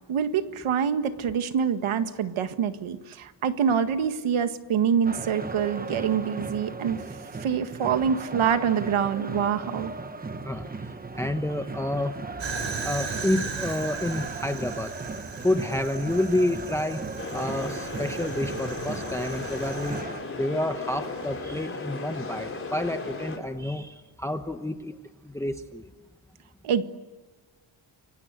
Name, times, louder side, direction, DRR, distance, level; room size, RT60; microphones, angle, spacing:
voice 1, 0.0-7.0 7.4-9.9 26.6-26.8, right 7 dB, 85° right, 9 dB, 1.8 m, -26 dB
sound 1, 5.0-20.2, right 3 dB, 20° right, 1.0 m, -37 dB
voice 2, 11.1-12.1 12.8-14.9 15.4-17.0 17.3-20.0 20.4-25.0 25.2-25.9, left 1 dB, 5° left, 7 dB, 1.0 m, -29 dB
Fire, 12.4-20.0, right 4 dB, 65° right, 6.0 m, -37 dB
sound 2, 17.2-23.4, left 3 dB, 25° left, 4.4 m, -36 dB
29.5 x 24.0 x 8.1 m, 1.3 s
wide cardioid pair, 160°, 48 cm